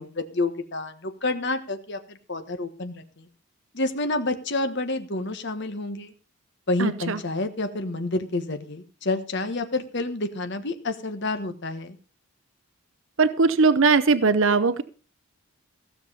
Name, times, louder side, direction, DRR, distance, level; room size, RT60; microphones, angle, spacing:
voice 1, 0.0-3.3 3.7-6.1 6.7-12.0, left 2 dB, 50° left, 1.3 m, -29 dB
voice 2, 6.8-7.2 13.2-14.8, right 4 dB, 60° right, 0.6 m, -20 dB
16.0 x 7.2 x 5.5 m
head